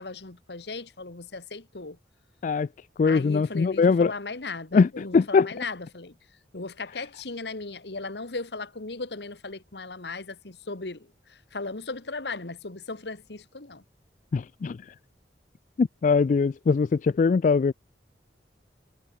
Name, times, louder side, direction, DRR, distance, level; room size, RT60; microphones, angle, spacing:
voice 1, 0.0-2.0 3.0-6.1 6.5-13.8, left 3 dB, 70° left, 1.6 m, -37 dB
voice 2, 3.0-4.1 4.7-5.5 14.3-14.8 15.8-17.7, left 5 dB, 45° left, 0.3 m, -21 dB
head